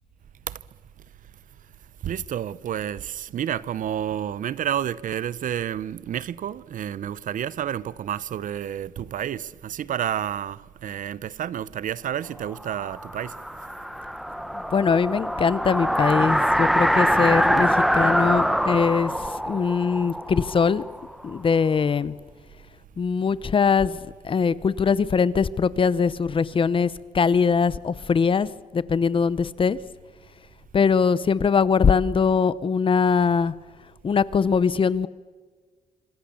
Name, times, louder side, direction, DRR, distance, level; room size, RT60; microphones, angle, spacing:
voice 1, 2.0-13.3, right 10 dB, 65° right, 0.8 m, -30 dB
sound 1, 12.6-21.4, equal, ahead, 1.0 m, -24 dB
voice 2, 14.7-20.8 21.2-22.2 23.0-24.0 24.2-29.8 30.7-33.5 34.0-35.1, left 5 dB, 35° left, 0.8 m, -22 dB
26.5 x 26.0 x 7.0 m
cardioid pair, 140°, 15 cm